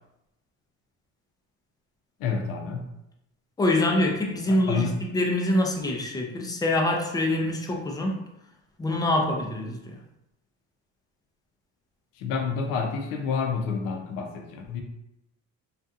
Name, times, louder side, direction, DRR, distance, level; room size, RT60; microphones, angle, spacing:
voice 1, 2.2-2.8 4.5-4.9 12.2-14.8, left 5 dB, 80° left, 3 dB, 0.6 m, -29 dB
voice 2, 3.6-4.9 5.1-8.2 8.8-9.9, left 1 dB, 10° left, 0 dB, 0.4 m, -25 dB
2.6 x 2.4 x 2.3 m, 0.86 s
cardioid pair, 115°, 33 cm